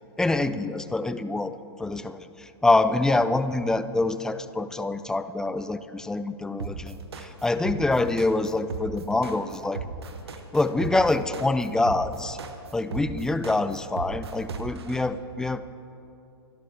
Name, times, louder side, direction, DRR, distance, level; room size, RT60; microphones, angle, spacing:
voice 1, 0.2-9.8 10.5-12.4 12.7-15.6, left 2 dB, 5° left, 12 dB, 0.4 m, -25 dB
sound 1, 6.6-15.0, right 4 dB, 70° right, 1.2 m, -36 dB
25.0 x 11.5 x 3.4 m, 2.7 s
figure-of-eight pair, 105°, 14 cm